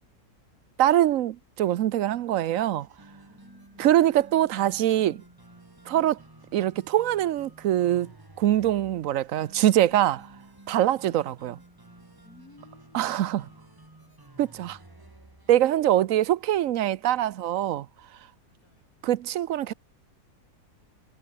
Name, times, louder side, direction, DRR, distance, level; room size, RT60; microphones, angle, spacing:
voice 1, 0.8-2.9 3.8-5.2 5.9-6.1 6.5-10.3 10.7-11.6 12.9-13.4 14.4-14.8 15.5-17.9 19.0-19.7, right 12 dB, 65° right, 1.0 m, -23 dB
sound 1, 2.8-15.6, right 2 dB, 15° right, 1.8 m, -52 dB
voice 2, 3.3-3.9 5.9-6.2 12.2-14.1 14.5-15.2 15.7-16.1 18.5-18.9, left 2 dB, 70° left, 5.8 m, -58 dB
omnidirectional pair, 1.6 m